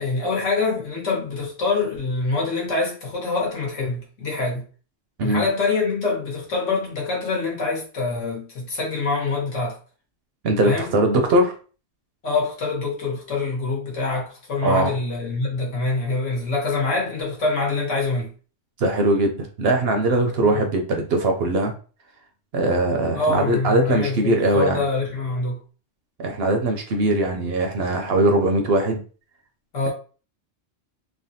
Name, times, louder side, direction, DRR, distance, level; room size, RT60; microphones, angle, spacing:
voice 1, 0.0-4.6 5.2-9.8 10.6-10.9 12.2-18.3 20.4-20.6 23.1-25.6 29.7-29.9, left 3 dB, 75° left, 1.4 m, -25 dB
voice 2, 10.4-11.5 14.6-14.9 18.8-21.7 22.5-24.9 26.2-29.0, right 1 dB, 65° right, 0.7 m, -21 dB
3.3 x 2.1 x 2.6 m
omnidirectional pair, 1.3 m